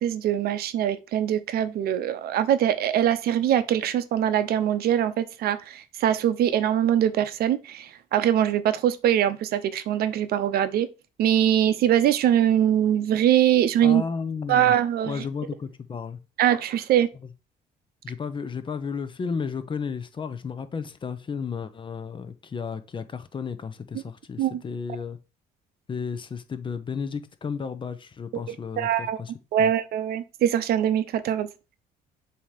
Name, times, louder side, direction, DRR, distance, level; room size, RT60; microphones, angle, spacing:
voice 1, 0.0-10.9 11.2-14.0 14.5-15.2 16.4-17.1 24.4-24.6 28.8-29.2 29.5-31.5, right 10 dB, 65° right, 0.6 m, -22 dB
voice 2, 13.8-14.7 15.0-16.2 18.0-25.2 25.9-29.3 29.6-29.7, left 6 dB, 30° left, 0.7 m, -33 dB
7.1 x 2.9 x 4.9 m
cardioid pair, 110°, 17 cm